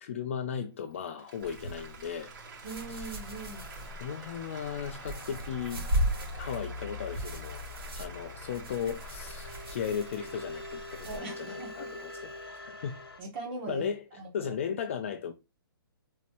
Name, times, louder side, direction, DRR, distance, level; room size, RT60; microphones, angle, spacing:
voice 1, 0.0-2.3 2.9-3.1 4.0-5.9 6.4-7.6 7.9-13.0 13.7-14.0 14.3-15.3, left 7 dB, 35° left, 0.4 m, -36 dB
Applause, 0.8-12.4, right 4 dB, 55° right, 2.5 m, -49 dB
sound 1, 1.4-11.2, equal, 80° right, 1.6 m, -37 dB
voice 2, 2.6-3.7 11.1-11.9 13.2-14.6, right 2 dB, 25° right, 1.2 m, -41 dB
sound 2, 2.8-13.2, left 3 dB, 80° left, 1.0 m, -44 dB
4.0 x 2.6 x 3.0 m
hypercardioid pair, 165°, 12 cm